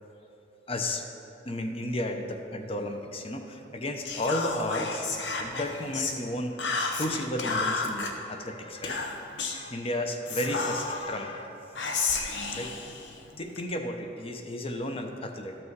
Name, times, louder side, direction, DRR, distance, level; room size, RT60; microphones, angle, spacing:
voice 1, 0.7-1.0 1.4-5.1 5.4-6.7 7.0-9.2 9.5-11.5 12.5-12.8 13.4-15.6, left 1 dB, 35° left, 4 dB, 0.7 m, -33 dB
Whispering, 4.0-6.2 6.6-8.1 8.8-9.6 10.2-11.1 11.7-13.6, left 4 dB, 80° left, 0.9 m, -32 dB
13.5 x 6.1 x 4.7 m, 2.8 s
head